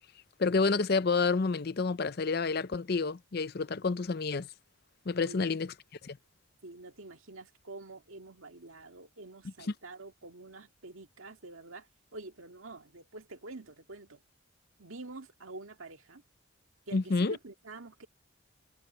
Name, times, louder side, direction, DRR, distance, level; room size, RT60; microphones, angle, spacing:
voice 1, 0.4-4.5 5.1-5.7 6.0-6.2 16.9-17.4, left 4 dB, 50° left, 0.5 m, -29 dB
voice 2, 6.6-14.2 14.8-16.2 16.9-18.1, right 2 dB, 80° right, 2.0 m, -47 dB
head